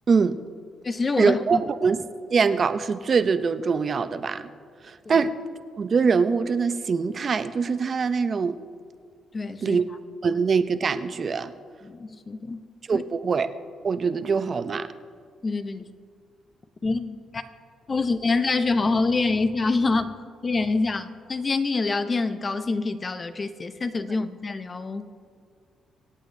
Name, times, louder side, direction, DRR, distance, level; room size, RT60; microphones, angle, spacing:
voice 1, 0.1-0.4 1.2-4.5 4.8-5.3 5.8-8.6 9.6-9.8 10.2-11.5 12.9-13.5 13.8-14.9, right 5 dB, 45° right, 0.6 m, -23 dB
voice 2, 0.8-1.6 5.1-5.2 9.3-9.8 11.8-12.7 12.9-13.0 15.4-15.9 16.8-17.4 17.9-20.2 20.4-25.1, left 3 dB, 30° left, 0.7 m, -26 dB
25.5 x 8.6 x 2.7 m
cardioid pair, 90°, 0 cm